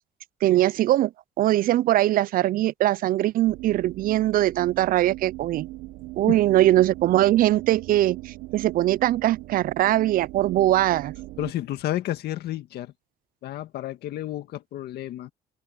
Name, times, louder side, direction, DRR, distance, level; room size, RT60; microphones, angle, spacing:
voice 1, 0.4-1.1 1.4-5.7 6.2-11.1, right 14 dB, 55° right, 0.4 m, -21 dB
sound 1, 3.4-11.5, right 19 dB, 80° right, 0.8 m, -39 dB
voice 2, 11.4-12.9 13.4-15.3, left 13 dB, 70° left, 1.9 m, -31 dB
open air
cardioid pair, 110°, 17 cm